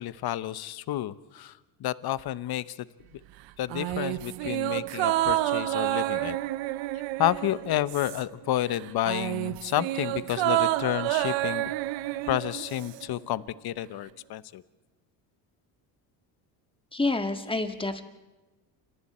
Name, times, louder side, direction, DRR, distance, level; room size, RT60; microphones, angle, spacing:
voice 1, 0.0-1.5 1.8-2.9 3.6-6.4 7.2-11.7 12.3-14.6, left 13 dB, 50° left, 16 dB, 1.0 m, -30 dB
sound 1, 3.7-8.5 8.7-13.1 13.3-13.4, right 16 dB, 70° right, 0.9 m, -29 dB
voice 2, 16.9-18.0, left 2 dB, 10° left, 7 dB, 1.8 m, -28 dB
29.0 x 26.5 x 4.4 m, 1.2 s
supercardioid pair, 95°, 47 cm